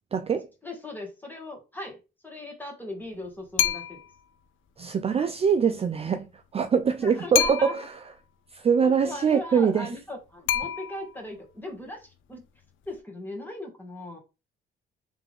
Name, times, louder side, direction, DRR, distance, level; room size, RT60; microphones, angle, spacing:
voice 1, 0.1-0.5 4.8-6.3 6.5-7.8 8.5-9.9, right 6 dB, 30° right, 0.4 m, -23 dB
voice 2, 0.6-2.0 2.2-4.0 7.0-7.8 8.8-12.5 12.9-14.2, left 1 dB, 10° left, 1.8 m, -38 dB
sound 1, 3.6-4.2 7.3-8.0 10.5-11.3, left 11 dB, 80° left, 0.5 m, -27 dB
3.6 x 3.4 x 3.5 m
cardioid pair, 90°, 20 cm